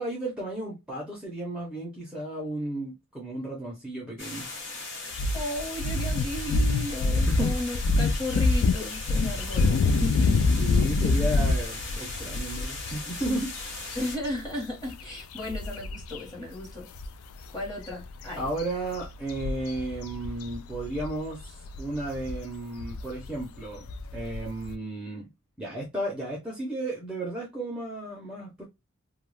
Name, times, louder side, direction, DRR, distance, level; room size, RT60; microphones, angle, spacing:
voice 1, 0.0-4.4 7.3-7.6 9.5-9.8 10.6-13.6 18.3-23.8 24.1-25.3 25.6-28.6, right 1 dB, 5° right, 0.6 m, -34 dB
sound 1, 4.2-14.2, left 3 dB, 60° left, 0.9 m, -38 dB
sound 2, 5.1-16.2 16.5-16.7 17.0-24.7, left 3 dB, 75° left, 0.3 m, -27 dB
voice 2, 5.3-10.8 13.9-16.9 17.5-18.5, left 1 dB, 20° left, 1.1 m, -35 dB
2.4 x 2.2 x 3.1 m
head